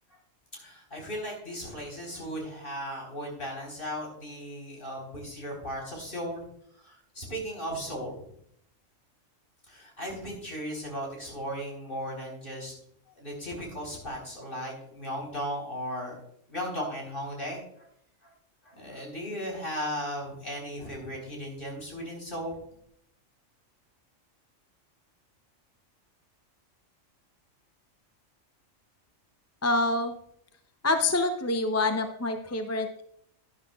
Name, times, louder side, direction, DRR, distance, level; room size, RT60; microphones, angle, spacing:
voice 1, 0.5-6.4 6.8-8.2 9.7-12.7 13.2-16.1 16.5-17.9 18.2-18.3 18.6-22.6, equal, 45° left, 0 dB, 4.3 m, -36 dB
voice 2, 29.6-30.2 30.8-33.0, left 2 dB, 20° left, 6 dB, 0.5 m, -26 dB
12.0 x 11.0 x 2.4 m, 0.70 s
omnidirectional pair, 1.3 m